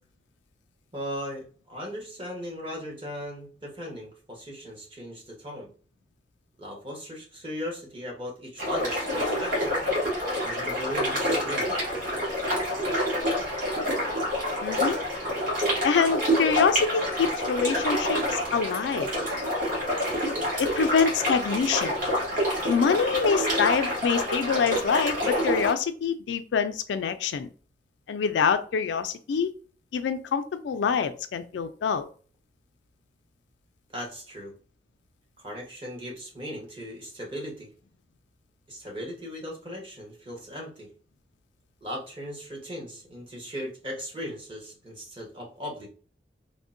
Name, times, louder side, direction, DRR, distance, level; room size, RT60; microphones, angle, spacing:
voice 1, 0.9-5.7 6.6-9.8 10.4-11.8 33.9-34.5 35.4-37.7 38.7-40.9 41.8-45.9, equal, 30° right, -1 dB, 1.1 m, -38 dB
sound 1, 8.6-25.7, equal, 50° right, 1.4 m, -27 dB
voice 2, 14.6-15.0 15.8-19.1 20.6-21.9 22.7-27.5 28.1-29.5 29.9-32.1, left 6 dB, 85° left, 10 dB, 0.3 m, -25 dB
3.5 x 2.1 x 2.5 m, 0.40 s
head